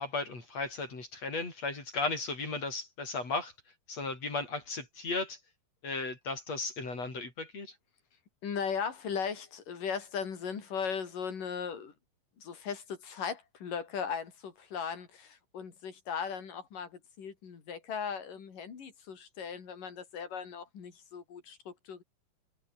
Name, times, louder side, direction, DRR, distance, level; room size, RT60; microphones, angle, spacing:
voice 1, 0.0-3.5 3.9-5.4 5.8-7.7, left 3 dB, 45° left, 7.1 m, -35 dB
voice 2, 8.4-11.9 12.4-22.0, left 6 dB, 65° left, 5.1 m, -38 dB
omnidirectional pair, 4.1 m